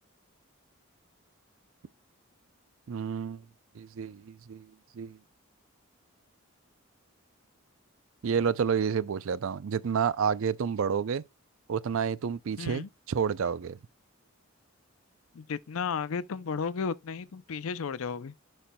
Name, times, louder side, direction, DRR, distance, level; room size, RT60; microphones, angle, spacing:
voice 1, 2.9-3.4 3.8-5.2 8.2-11.2 11.7-13.8, right 7 dB, 65° right, 0.4 m, -30 dB
voice 2, 12.6-12.9 15.3-18.3, left 5 dB, 70° left, 0.5 m, -33 dB
11.0 x 4.3 x 2.2 m
head